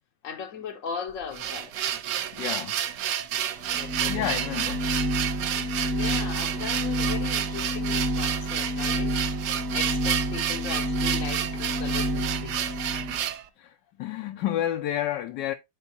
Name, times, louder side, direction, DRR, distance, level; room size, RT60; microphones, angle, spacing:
voice 1, 0.2-1.7 3.7-4.3 5.9-12.6, left 7 dB, 60° left, 1.0 m, -38 dB
sound 1, 1.1-13.4, right 10 dB, 70° right, 1.2 m, -30 dB
voice 2, 2.3-2.8 4.1-4.9 13.6-15.5, left 11 dB, 80° left, 1.2 m, -30 dB
sound 2, 3.6-13.2, equal, 40° right, 1.2 m, -29 dB
11.0 x 4.1 x 2.8 m
omnidirectional pair, 1.9 m